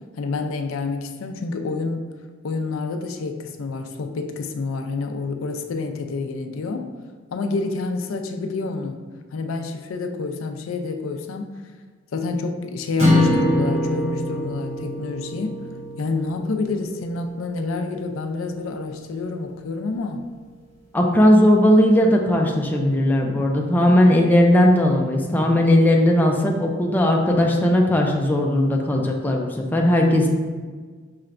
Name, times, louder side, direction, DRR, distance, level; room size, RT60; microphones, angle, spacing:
voice 1, 0.2-2.1 2.4-6.9 7.3-9.0 9.3-11.5 12.1-15.5 16.0-20.3, left 3 dB, 80° left, 6 dB, 0.4 m, -28 dB
sound 1, 13.0-17.3, left 1 dB, 35° right, 1.2 m, -24 dB
voice 2, 20.9-30.3, left 1 dB, 10° left, 0 dB, 0.4 m, -17 dB
5.6 x 3.2 x 2.5 m, 1.5 s
head